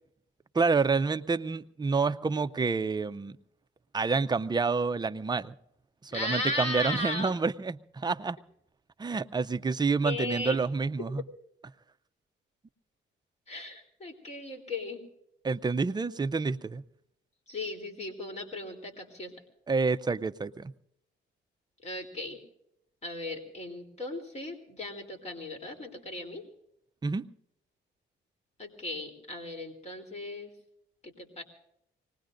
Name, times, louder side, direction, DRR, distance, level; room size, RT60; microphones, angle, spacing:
voice 1, 0.5-3.4 3.9-5.5 6.0-8.4 9.0-11.2 15.4-16.8 19.7-20.7 27.0-27.3, right 4 dB, 20° right, 0.6 m, -28 dB
voice 2, 6.1-7.3 10.0-10.6 13.5-15.0 17.5-19.3 21.8-22.4 23.0-26.4 28.6-30.5 31.0-31.4, left 2 dB, 35° left, 3.3 m, -36 dB
25.5 x 19.5 x 2.6 m
cardioid pair, 90°, 20 cm